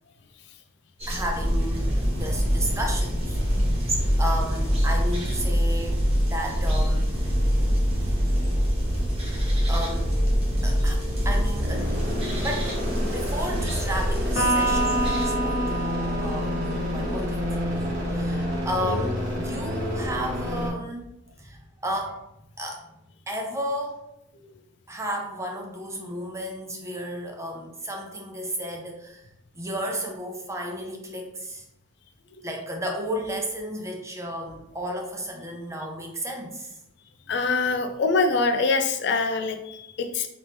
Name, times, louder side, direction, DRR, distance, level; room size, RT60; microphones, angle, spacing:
sound 1, 1.0-15.2, equal, 30° right, 1.2 m, -31 dB
voice 1, 1.1-3.4 4.2-7.1 9.7-10.1 10.6-11.9 12.4-12.7 13.0-21.0 21.4-22.2 22.6-22.9 23.3-24.0 24.9-29.2 29.5-31.6 32.4-36.7, equal, 15° right, 1 dB, 0.7 m, -33 dB
sound 2, 1.3-20.7, equal, 60° right, 1.2 m, -26 dB
Electric guitar, 14.4-17.9, right 1 dB, 85° left, 0.9 m, -28 dB
voice 2, 37.3-40.3, left 3 dB, 65° left, 7 dB, 0.4 m, -25 dB
4.1 x 3.0 x 3.4 m, 0.82 s
head